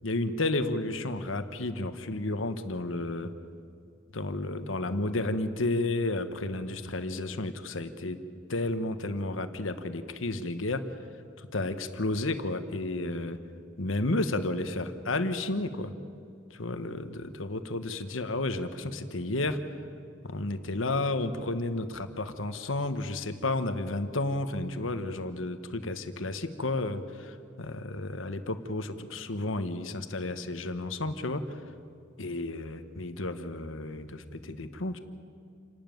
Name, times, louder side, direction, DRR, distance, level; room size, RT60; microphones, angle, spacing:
voice 1, 0.0-3.3 4.1-8.2 8.5-11.0 11.4-13.4 13.8-15.9 16.5-19.6 20.2-31.6 32.2-35.0, left 2 dB, 85° left, 10 dB, 1.3 m, -32 dB
28.5 x 12.5 x 9.3 m, 2.4 s
head